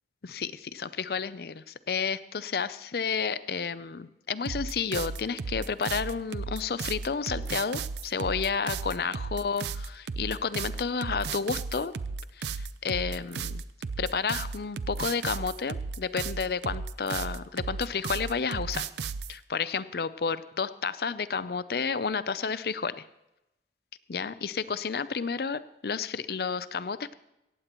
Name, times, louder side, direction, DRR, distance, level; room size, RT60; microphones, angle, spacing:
voice 1, 0.2-11.9 12.4-13.6 14.0-18.8 19.3-23.0 24.1-27.1, left 5 dB, 55° left, 15 dB, 0.5 m, -31 dB
sound 1, 4.4-19.3, right 5 dB, 70° right, 0.5 m, -34 dB
17.5 x 15.0 x 3.0 m, 0.91 s
head